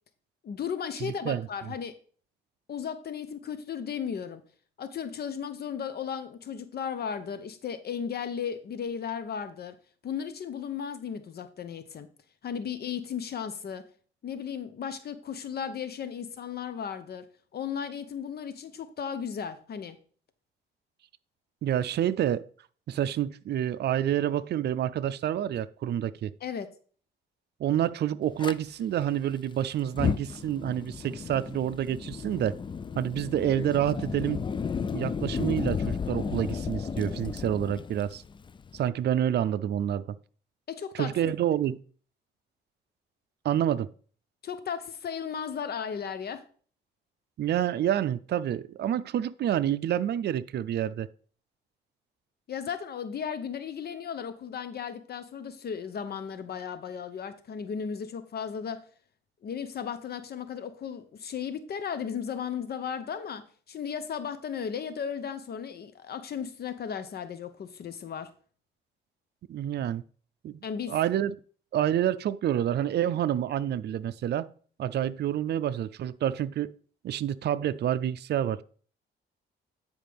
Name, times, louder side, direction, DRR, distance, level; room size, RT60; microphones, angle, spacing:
voice 1, 0.4-1.9 2.7-4.4 4.8-9.8 10.0-12.1 12.4-13.8 14.2-17.3 17.5-20.0 26.4-26.7 40.7-41.3 44.4-46.4 52.5-58.8 59.4-68.3 70.6-71.0, left 7 dB, 55° left, 0.8 m, -35 dB
voice 2, 1.0-1.5 21.6-22.5 22.9-26.3 27.6-32.6 33.0-34.4 34.9-38.2 38.7-40.2 40.9-41.8 43.4-43.9 47.4-51.1 69.5-70.0 70.4-71.3 71.7-74.5 74.8-76.7 77.0-78.6, right 10 dB, 55° right, 0.5 m, -28 dB
Fire, 28.4-28.5 29.8-38.9, left 6 dB, 25° left, 0.4 m, -33 dB
9.3 x 4.9 x 3.5 m
cardioid pair, 90°, 20 cm